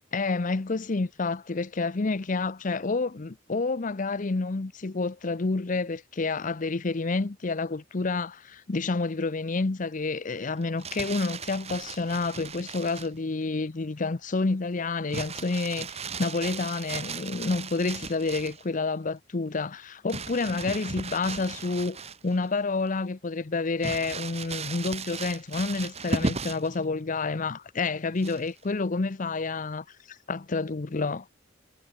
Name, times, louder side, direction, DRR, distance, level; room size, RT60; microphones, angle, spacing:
voice 1, 0.1-31.2, left 3 dB, 40° left, 0.7 m, -29 dB
Crumpling crinkling, 10.6-13.2 15.1-18.6 20.1-22.5 22.9-23.0 23.8-26.8 28.2-28.6, right 4 dB, 35° right, 1.3 m, -36 dB
head